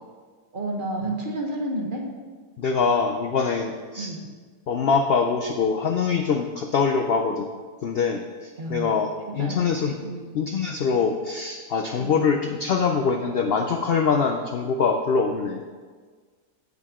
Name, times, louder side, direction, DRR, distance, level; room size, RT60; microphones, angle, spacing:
voice 1, 0.5-2.1 3.9-4.2 8.6-9.0 9.4-10.3 12.0-12.2, right 1 dB, 40° right, 0 dB, 1.0 m, -31 dB
voice 2, 2.6-4.1 4.7-7.5 7.8-10.0 10.3-15.6, left 5 dB, 75° left, 4 dB, 0.5 m, -24 dB
8.5 x 8.3 x 3.6 m, 1.5 s
omnidirectional pair, 1.6 m